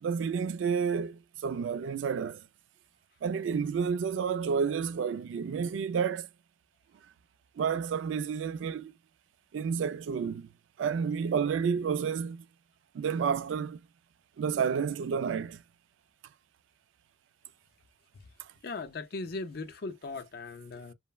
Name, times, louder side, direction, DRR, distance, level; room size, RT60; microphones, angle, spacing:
voice 1, 0.0-2.4 3.2-6.3 7.6-8.9 9.5-10.5 10.8-12.5 12.9-13.8 14.4-15.6, right 6 dB, 80° right, 0.3 m, -30 dB
voice 2, 18.6-20.9, left 3 dB, 55° left, 0.5 m, -38 dB
3.1 x 2.1 x 2.2 m
head